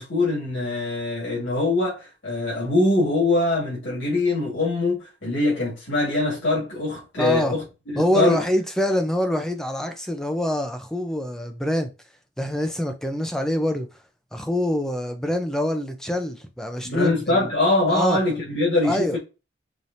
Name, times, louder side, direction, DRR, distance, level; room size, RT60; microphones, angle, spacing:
voice 1, 0.0-8.4 16.8-19.2, left 2 dB, 85° left, 2.4 m, -23 dB
voice 2, 7.2-7.6 8.0-11.9 12.4-13.9 14.3-17.5 17.9-18.2 18.8-19.2, left 1 dB, 5° left, 0.5 m, -25 dB
4.9 x 2.8 x 2.7 m
head